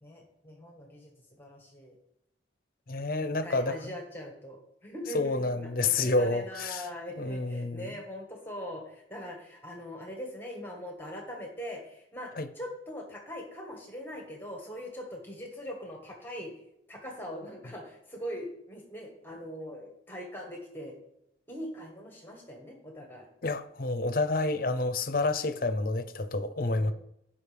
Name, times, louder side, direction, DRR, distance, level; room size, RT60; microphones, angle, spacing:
voice 1, 0.0-1.1 1.4-2.0 3.2-16.5 16.9-21.0 21.5-23.3 26.7-26.9, equal, 10° left, 1.5 m, -41 dB
voice 2, 2.9-3.9 5.1-6.9 7.2-7.9 12.4-12.5 23.4-26.9, left 2 dB, 50° left, 0.7 m, -29 dB
16.0 x 5.6 x 3.4 m
head